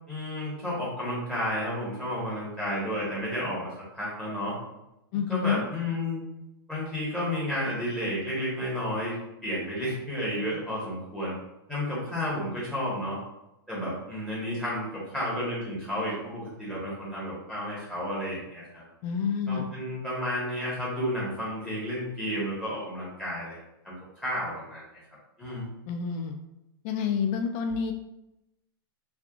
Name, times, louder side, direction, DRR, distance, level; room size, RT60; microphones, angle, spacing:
voice 1, 0.1-4.5 5.3-6.2 6.7-9.2 9.4-11.3 11.7-13.2 13.7-18.8 19.5-23.6 23.8-24.8 25.4-25.6, equal, 5° left, -7 dB, 1.2 m, -32 dB
voice 2, 5.1-5.6 19.0-19.7 25.9-26.4 26.8-27.9, left 6 dB, 45° left, 5 dB, 0.4 m, -28 dB
3.3 x 2.4 x 2.4 m, 0.90 s
hypercardioid pair, 125°, 13 cm